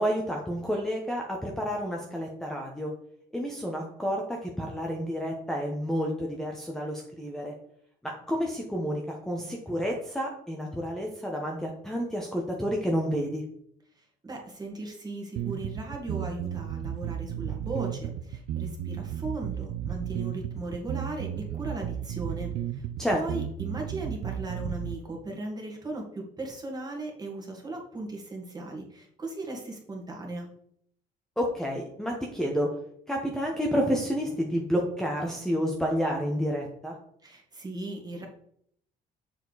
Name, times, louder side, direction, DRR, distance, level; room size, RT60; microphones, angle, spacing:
voice 1, 0.0-2.9 3.3-7.5 8.0-13.4 23.0-23.2 31.4-32.7 33.1-36.9, equal, 5° left, -1 dB, 1.0 m, -30 dB
voice 2, 14.2-22.8 23.1-30.5 37.2-38.3, right 2 dB, 25° right, 0 dB, 2.0 m, -37 dB
sound 1, 15.4-25.0, right 10 dB, 70° right, 0.5 m, -34 dB
7.1 x 4.4 x 4.1 m, 0.69 s
cardioid pair, 110°, 17 cm